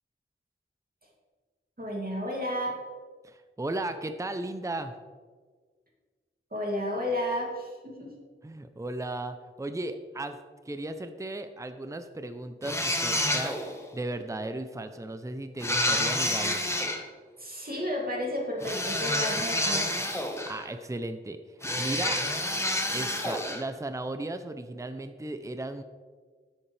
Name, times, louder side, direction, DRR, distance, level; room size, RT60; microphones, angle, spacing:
voice 1, 1.8-2.7 6.5-8.1 17.4-19.9, left 1 dB, 45° right, -2 dB, 2.6 m, -32 dB
voice 2, 3.2-4.9 8.4-10.4 10.7-13.6 13.9-16.6 20.4-21.4 21.8-22.2 22.9-25.8, right 2 dB, 15° right, 9 dB, 0.6 m, -35 dB
sound 1, 12.6-13.8 15.6-17.0 18.6-20.7 21.6-23.6, left 1 dB, 15° left, 1.3 m, -28 dB
12.5 x 7.2 x 3.3 m, 1.5 s
wide cardioid pair, 55°, 21 cm